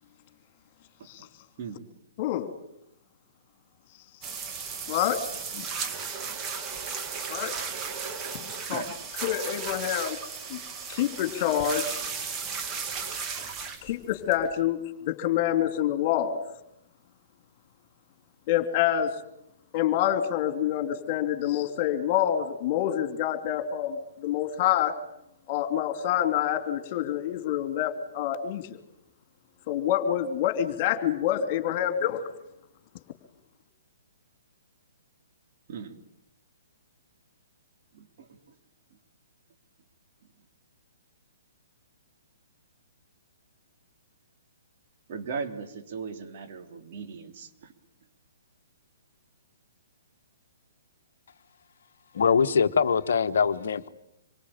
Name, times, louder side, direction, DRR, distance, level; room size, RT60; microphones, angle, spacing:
voice 1, 2.2-2.5 4.9-5.2 5.5-5.7 7.3-7.5 8.3-8.4 8.7-8.8 9.2-10.2 10.5-10.6 10.9-12.0 13.8-16.4 18.5-19.1 19.7-24.9 25.5-28.8 29.7-32.2, left 11 dB, 35° left, 9 dB, 3.0 m, -27 dB
sound 1, 4.2-14.6, right 5 dB, 20° right, 2.5 m, -35 dB
voice 2, 37.9-38.4 45.1-47.7, right 5 dB, 45° right, 5 dB, 3.6 m, -38 dB
voice 3, 52.1-53.9, left 6 dB, 60° left, 9 dB, 1.2 m, -23 dB
27.0 x 24.0 x 8.9 m, 0.81 s
figure-of-eight pair, 125°, 0 cm